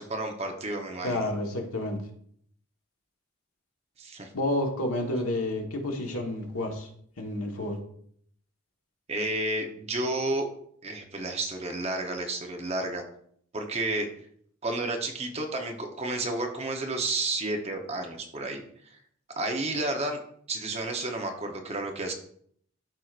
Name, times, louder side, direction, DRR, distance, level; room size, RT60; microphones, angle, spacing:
voice 1, 0.0-1.3 4.0-4.3 9.1-10.5 10.8-13.0 13.5-14.1 14.6-19.0 19.4-20.2 20.5-22.1, right 2 dB, 30° right, 3 dB, 0.8 m, -31 dB
voice 2, 1.0-2.0 4.3-6.9 7.2-7.8, left 1 dB, 85° left, 2 dB, 1.4 m, -30 dB
12.0 x 4.6 x 2.5 m, 0.64 s
head